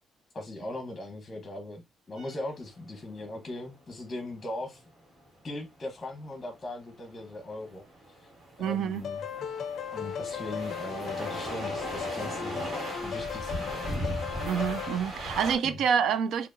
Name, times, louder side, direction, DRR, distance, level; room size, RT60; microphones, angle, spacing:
voice 1, 0.3-4.8 5.4-7.9 8.6-9.2 9.9-12.7 13.0-14.0 15.6-15.8, left 2 dB, 30° left, 1.0 m, -39 dB
sound 1, 2.2-15.6, right 1 dB, 55° right, 1.9 m, -38 dB
voice 2, 8.6-9.0 14.4-16.5, right 7 dB, 75° right, 0.4 m, -27 dB
sound 2, 9.0-15.0, left 7 dB, 60° left, 0.4 m, -36 dB
4.3 x 2.8 x 2.6 m
cardioid pair, 90°, 0 cm